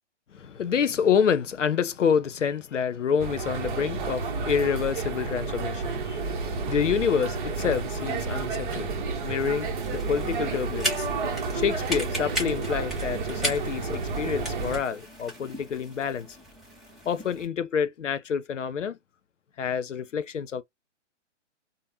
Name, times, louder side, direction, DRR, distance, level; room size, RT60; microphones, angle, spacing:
voice 1, 0.3-11.2 11.5-16.4 17.1-19.0 19.6-20.6, left 7 dB, 80° left, 0.6 m, -28 dB
sound 1, 3.2-14.8, right 4 dB, 45° right, 0.9 m, -31 dB
sound 2, 9.3-17.4, equal, ahead, 0.6 m, -37 dB
3.3 x 2.1 x 2.5 m
figure-of-eight pair, 130°, 36 cm